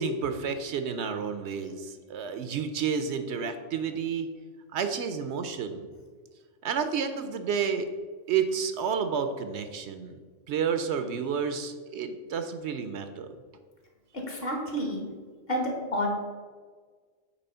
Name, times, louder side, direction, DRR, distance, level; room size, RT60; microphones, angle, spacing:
voice 1, 0.0-4.3 4.7-5.9 6.6-7.9 8.3-10.1 10.5-13.3, right 6 dB, 70° right, 9 dB, 0.8 m, -30 dB
voice 2, 14.3-15.1 15.5-16.1, equal, 55° left, 1 dB, 1.5 m, -29 dB
8.3 x 3.1 x 5.5 m, 1.5 s
omnidirectional pair, 1.2 m